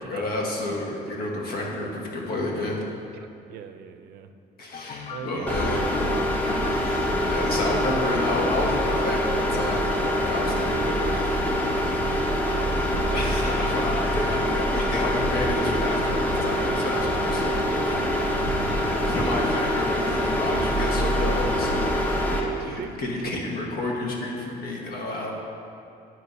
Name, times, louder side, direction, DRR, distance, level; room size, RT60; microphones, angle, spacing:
voice 1, 0.0-2.8 4.6-5.9 6.7-11.2 13.1-18.0 18.7-22.0 22.4-25.3, left 2 dB, 65° left, -1 dB, 1.3 m, -30 dB
voice 2, 3.1-4.3 5.0-5.7 11.6-12.0 22.6-23.4, right 8 dB, 65° right, 8 dB, 0.5 m, -41 dB
sound 1, 4.7-10.5, left 6 dB, 40° left, 0.4 m, -38 dB
sound 2, 5.5-22.4, equal, 10° left, 0.8 m, -25 dB
Breathing / Dog, 14.3-21.0, equal, 80° left, 1.4 m, -44 dB
11.0 x 4.6 x 2.7 m, 2.6 s
cardioid pair, 110°, 17 cm